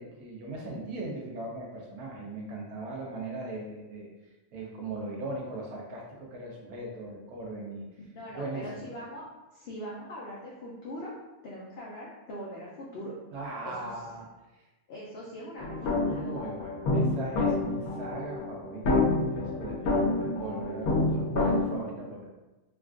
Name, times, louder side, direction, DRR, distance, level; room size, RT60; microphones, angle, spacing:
voice 1, 0.0-4.1 4.5-7.8 8.3-8.8 13.3-14.3 16.1-22.3, right 2 dB, 90° right, -2 dB, 1.2 m, -39 dB
voice 2, 8.1-9.3 9.5-11.1 11.4-13.1 13.6-13.9 14.9-16.3, equal, 65° left, -5 dB, 0.6 m, -41 dB
sound 1, 15.6-21.6, left 2 dB, 85° left, 1.1 m, -28 dB
3.5 x 2.3 x 2.4 m, 1.1 s
omnidirectional pair, 1.5 m